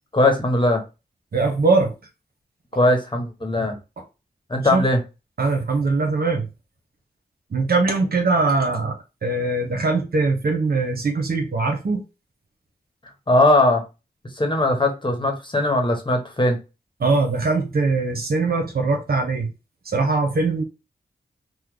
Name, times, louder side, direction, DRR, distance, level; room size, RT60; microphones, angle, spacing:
voice 1, 0.1-0.8 2.7-3.8 4.5-5.0 13.3-13.8 14.4-16.6, left 1 dB, 30° left, 1.1 m, -19 dB
voice 2, 1.3-1.9 4.7-4.8 5.4-6.5 7.5-12.0 17.0-19.5 19.8-20.6, right 3 dB, 65° right, 0.9 m, -21 dB
3.0 x 2.2 x 3.6 m
cardioid pair, 40°, 17 cm